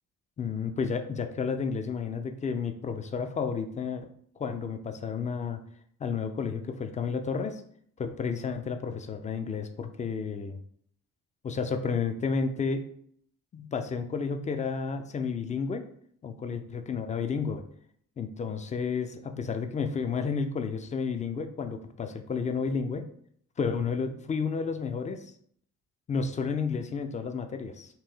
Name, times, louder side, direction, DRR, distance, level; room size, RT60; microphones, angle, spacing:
voice 1, 0.4-4.1 4.4-5.6 6.0-7.6 8.0-10.6 11.4-12.8 13.5-15.9 16.2-17.6 18.2-23.1 23.6-25.2 26.1-27.9, left 5 dB, 20° left, 7 dB, 0.3 m, -31 dB
4.4 x 2.9 x 2.3 m, 0.63 s
figure-of-eight pair, 40°, 45 cm